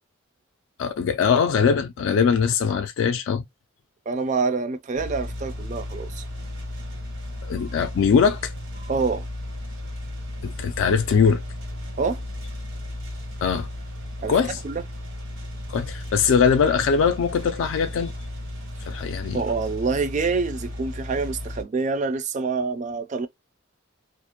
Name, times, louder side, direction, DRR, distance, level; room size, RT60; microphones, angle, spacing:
voice 1, 0.8-3.4 7.5-8.9 10.4-11.4 13.4-13.7 14.3-14.6 15.7-18.1 18.9-19.4, left 6 dB, 75° left, 0.3 m, -21 dB
voice 2, 4.1-6.2 8.9-9.3 12.0-12.2 14.2-14.8 19.3-23.3, right 4 dB, 35° right, 0.3 m, -26 dB
sound 1, 4.9-21.6, left 1 dB, 60° right, 0.8 m, -35 dB
2.5 x 2.1 x 2.8 m
head